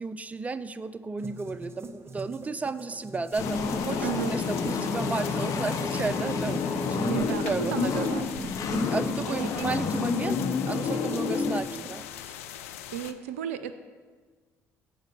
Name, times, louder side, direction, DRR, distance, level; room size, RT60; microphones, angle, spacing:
voice 1, 0.0-8.3 8.7-10.4 10.7-12.4, right 4 dB, 20° right, 13 dB, 0.4 m, -33 dB
sound 1, 1.2-12.0, right 3 dB, 35° right, 0.8 m, -44 dB
sound 2, 3.3-13.1, left 10 dB, 85° left, 0.4 m, -41 dB
sound 3, 3.4-11.6, left 5 dB, 55° left, 0.9 m, -29 dB
voice 2, 4.0-4.3 7.1-8.3 9.3-9.7 12.9-13.8, right 9 dB, 90° right, 10 dB, 0.4 m, -33 dB
7.9 x 4.9 x 6.8 m, 1.5 s
hypercardioid pair, 55°, 7 cm